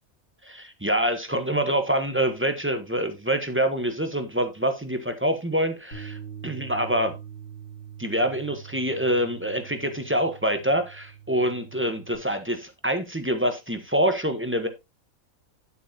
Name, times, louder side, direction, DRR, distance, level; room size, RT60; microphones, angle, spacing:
voice 1, 0.4-7.2 8.0-14.7, right 1 dB, 10° right, 1.0 m, -26 dB
Bass guitar, 5.9-12.2, right 8 dB, 75° left, 2.4 m, -43 dB
9.4 x 8.3 x 2.8 m
omnidirectional pair, 1.5 m